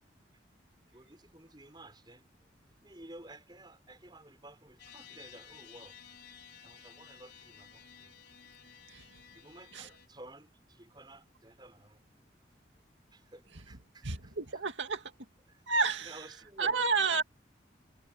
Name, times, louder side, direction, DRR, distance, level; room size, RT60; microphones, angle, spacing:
voice 1, 0.9-6.0 6.6-8.1 9.3-12.0 13.1-14.6 15.5-15.7 16.0-16.8, right 1 dB, 25° right, 6.8 m, -53 dB
sound 1, 4.8-10.1, left 8 dB, 60° left, 5.4 m, -54 dB
voice 2, 14.0-15.0 15.7-16.1 16.6-17.2, right 4 dB, 85° right, 2.2 m, -30 dB
head